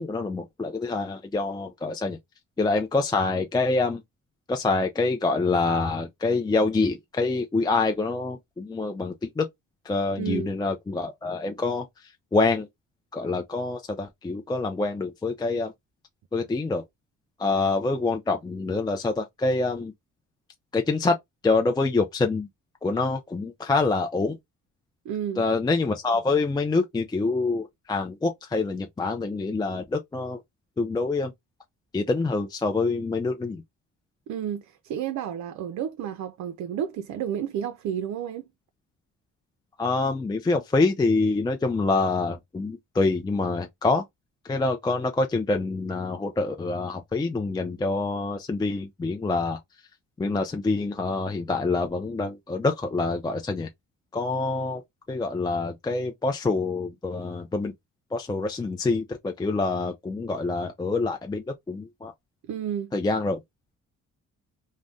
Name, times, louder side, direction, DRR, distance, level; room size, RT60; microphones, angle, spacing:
voice 1, 0.0-2.2 2.6-4.0 4.5-9.5 9.8-12.7 13.1-15.7 16.3-16.8 17.4-19.9 20.7-21.1 21.4-22.5 22.8-24.4 25.4-30.4 30.8-31.3 31.9-33.6 39.8-44.0 44.4-49.6 50.2-53.7 54.1-54.8 55.1-57.7 58.1-62.1 62.9-63.4, left 3 dB, 15° left, 0.4 m, -26 dB
voice 2, 10.2-10.5 25.1-25.4 34.3-38.4 62.4-62.9, right 9 dB, 70° right, 0.5 m, -31 dB
2.6 x 2.1 x 3.4 m
cardioid pair, 90°, 30 cm